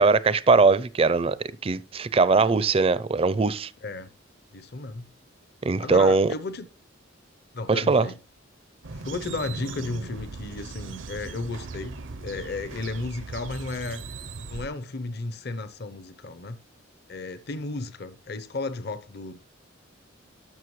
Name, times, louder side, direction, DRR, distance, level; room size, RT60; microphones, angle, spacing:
voice 1, 0.0-3.7 5.6-6.3 7.7-8.1, right 4 dB, 30° right, 0.4 m, -21 dB
voice 2, 4.5-5.1 5.8-6.7 7.5-8.2 9.0-14.0 14.5-16.6 17.1-19.4, left 3 dB, 55° left, 0.7 m, -34 dB
sound 1, 8.8-14.7, right 4 dB, 70° right, 0.6 m, -39 dB
12.5 x 6.4 x 3.1 m
head